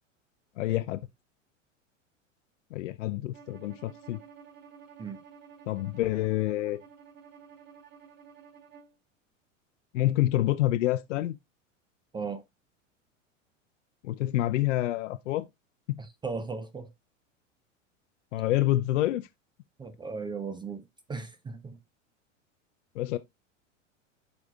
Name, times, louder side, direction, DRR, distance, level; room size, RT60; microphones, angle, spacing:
voice 1, 0.6-1.0 2.7-4.2 5.7-6.8 9.9-11.4 14.0-15.4 15.9-16.0 18.3-19.3 23.0-23.2, left 15 dB, 65° left, 0.6 m, -27 dB
Bowed string instrument, 3.3-9.0, right 7 dB, 30° right, 1.3 m, -52 dB
voice 2, 16.0-16.9 19.8-21.8, right 4 dB, 10° right, 0.5 m, -37 dB
12.0 x 4.2 x 2.3 m
hypercardioid pair, 95°, 39 cm